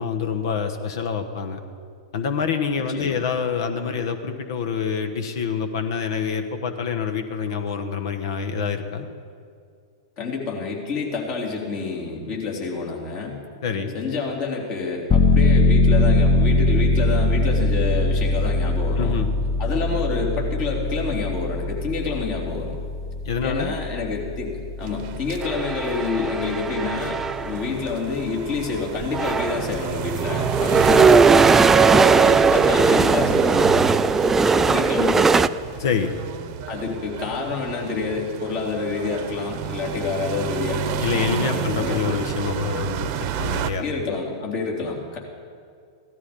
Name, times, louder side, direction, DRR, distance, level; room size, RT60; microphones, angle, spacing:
voice 1, 0.0-1.6 2.1-9.1 13.6-14.0 19.0-19.3 23.2-23.8 35.8-36.1 41.0-43.8, left 6 dB, 60° left, 7 dB, 1.2 m, -26 dB
voice 2, 10.2-13.4 13.9-19.2 19.6-22.8 23.4-31.1 31.7-33.7 34.4-35.3 36.7-42.2 43.4-45.2, left 4 dB, 45° left, -1 dB, 3.4 m, -28 dB
sound 1, 15.1-27.6 28.0-28.1, left 2 dB, 25° left, 1.2 m, -22 dB
sound 2, 24.8-43.7, right 8 dB, 45° right, 0.9 m, -32 dB
sound 3, 25.4-27.6 28.6-28.7 29.0-35.5, right 4 dB, 15° right, 0.4 m, -18 dB
16.5 x 12.5 x 5.3 m, 2.3 s
hypercardioid pair, 100°, 2 cm